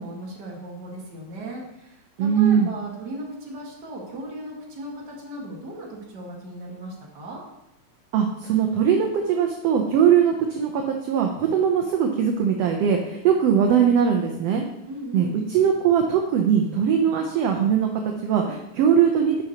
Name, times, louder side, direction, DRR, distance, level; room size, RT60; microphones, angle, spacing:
voice 1, 0.0-7.4 14.9-15.5, right 1 dB, 40° right, -2 dB, 1.9 m, -37 dB
voice 2, 2.2-2.7 8.1-14.6 15.1-19.4, right 8 dB, 70° right, 3 dB, 1.6 m, -21 dB
11.0 x 6.5 x 2.9 m, 0.85 s
omnidirectional pair, 3.4 m